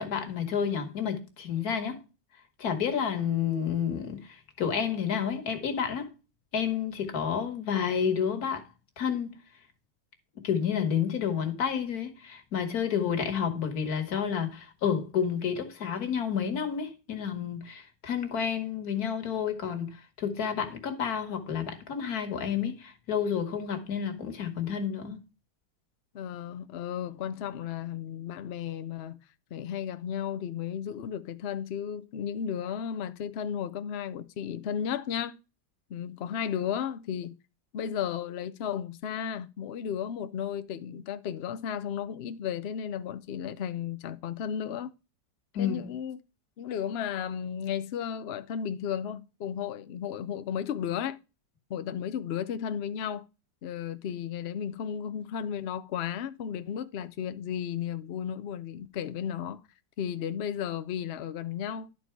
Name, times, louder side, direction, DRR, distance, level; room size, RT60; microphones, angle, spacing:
voice 1, 0.0-2.0 2.6-6.2 6.5-8.7 9.0-9.4 10.4-25.2 45.6-45.9, left 7 dB, 60° left, 1.8 m, -30 dB
voice 2, 26.1-29.2 29.5-35.4 35.9-37.3 37.7-44.9 45.6-46.2 46.6-51.2 51.7-53.3 53.6-59.6 60.0-61.9, left 8 dB, 80° left, 0.5 m, -34 dB
12.0 x 4.2 x 4.5 m
omnidirectional pair, 1.9 m